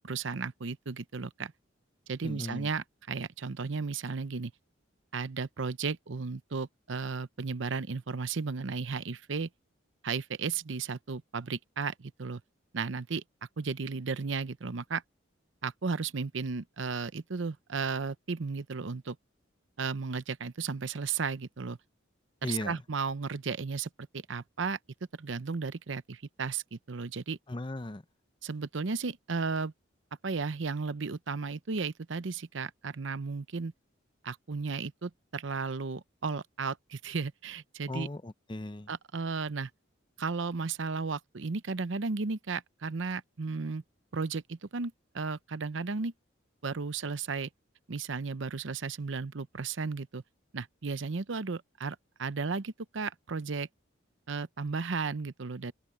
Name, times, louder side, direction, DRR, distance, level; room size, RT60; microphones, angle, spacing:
voice 1, 0.0-1.5 2.1-4.5 5.1-9.5 10.0-12.4 12.7-13.2 13.6-15.0 15.6-19.2 19.8-21.8 22.4-24.8 25.2-27.4 28.4-29.7 30.2-33.7 34.2-38.1 38.9-39.7 40.2-43.8 44.1-46.1 46.6-47.5 47.9-50.2 50.5-53.7 54.3-55.7, right 4 dB, 70° right, 0.7 m, -34 dB
voice 2, 2.2-2.7 22.4-22.8 27.5-28.0 37.9-38.9, left 1 dB, 25° left, 0.7 m, -37 dB
open air
head